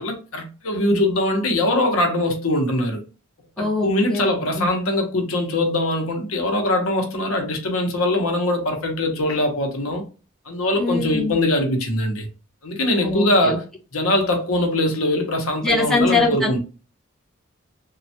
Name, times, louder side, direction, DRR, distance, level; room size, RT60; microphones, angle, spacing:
voice 1, 0.0-3.0 3.6-10.0 10.4-12.3 12.6-13.6 13.9-16.6, left 1 dB, 85° left, 0.8 m, -22 dB
voice 2, 3.6-4.7 10.8-11.4 13.0-13.6 15.6-16.6, left 3 dB, 5° left, 0.8 m, -23 dB
3.2 x 2.3 x 2.7 m
head